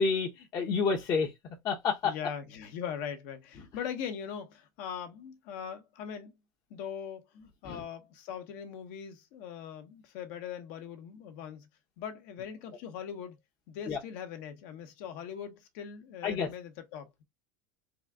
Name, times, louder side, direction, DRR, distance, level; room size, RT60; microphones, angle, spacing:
voice 1, 0.0-1.3 1.6-2.1 7.6-7.8 13.9-14.0 16.2-16.5, left 5 dB, 35° left, 0.9 m, -29 dB
voice 2, 2.0-6.3 6.7-7.3 7.6-11.7 12.0-13.4 13.7-17.2, left 8 dB, 65° left, 1.1 m, -41 dB
3.9 x 2.4 x 3.5 m
supercardioid pair, 130°, 10 cm